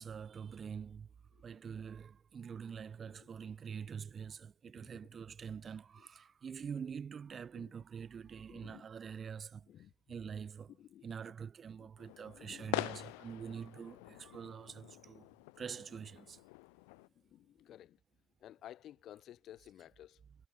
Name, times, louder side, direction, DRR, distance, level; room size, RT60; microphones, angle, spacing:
voice 1, 0.0-1.1 1.4-10.7 11.0-15.3 15.6-16.4, right 7 dB, 45° right, 2.2 m, -45 dB
voice 2, 8.5-8.8 9.7-9.9 10.8-11.1 11.8-11.9 12.3-12.7 17.1-18.0 18.4-20.2, left 12 dB, 65° left, 1.0 m, -54 dB
sound 1, 12.0-17.1, left 33 dB, 85° left, 1.5 m, -44 dB
hypercardioid pair, 60°, 0 cm